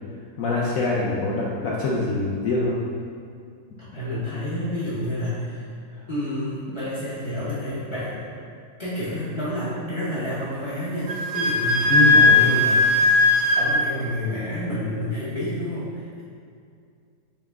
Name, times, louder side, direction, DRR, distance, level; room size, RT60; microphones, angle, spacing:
voice 1, 0.4-2.7 11.9-12.2, left 2 dB, 70° left, -5 dB, 0.8 m, -24 dB
voice 2, 3.8-5.7 6.1-8.3 8.8-13.1 13.5-16.2, left 1 dB, 35° left, -12 dB, 0.4 m, -29 dB
Wind instrument woodwind instrument, 11.1-13.6, left 3 dB, 80° right, 1.3 m, -17 dB
5.7 x 2.1 x 3.5 m, 2.3 s
omnidirectional pair, 1.9 m